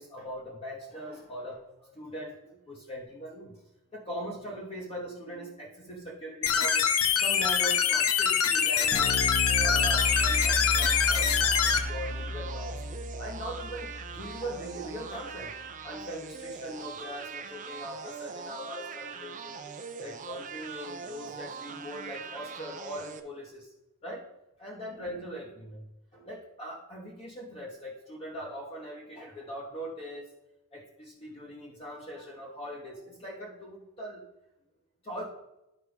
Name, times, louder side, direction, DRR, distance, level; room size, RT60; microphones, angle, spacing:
voice 1, 0.0-3.6 3.9-6.9 7.1-12.8 13.2-15.5 15.8-19.6 20.0-23.7 24.0-24.3 24.6-30.3 30.7-34.3 35.0-35.3, equal, 25° left, -3 dB, 1.1 m, -41 dB
sound 1, 6.4-11.8, left 7 dB, 75° left, 0.7 m, -24 dB
Bass guitar, 8.9-15.4, left 1 dB, 50° left, 1.0 m, -34 dB
sound 2, 9.5-23.2, right 5 dB, 35° right, 0.5 m, -42 dB
12.0 x 4.6 x 3.5 m, 0.92 s
head